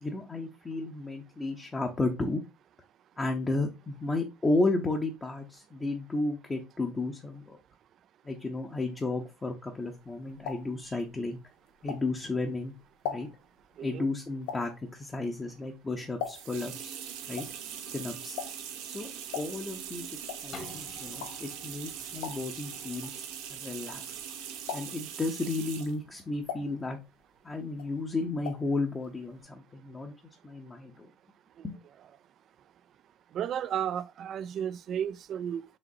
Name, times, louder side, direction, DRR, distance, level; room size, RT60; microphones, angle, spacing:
voice 1, 0.0-2.4 3.2-7.6 8.2-11.4 11.8-12.7 13.0-13.3 13.8-16.9 17.3-17.4 17.9-18.4 18.8-19.1 19.3-20.1 20.4-23.1 23.5-24.0 24.7-27.0 27.4-30.1 30.4-31.1 31.6-31.7, left 2 dB, 20° left, 0.7 m, -33 dB
sound 1, 9.9-12.4 12.8-16.7 17.0-24.3 24.6-25.2 25.7-27.4 27.7-28.8 29.0-29.1 29.4-29.5, left 8 dB, 85° left, 0.6 m, -41 dB
sound 2, 16.2-26.0, right 9 dB, 80° right, 0.7 m, -41 dB
sound 3, 20.5-26.3 26.8-26.9, left 3 dB, 50° left, 1.5 m, -52 dB
voice 2, 33.3-35.8, right 9 dB, 50° right, 0.3 m, -33 dB
5.1 x 2.9 x 2.7 m
supercardioid pair, 105°, 0 cm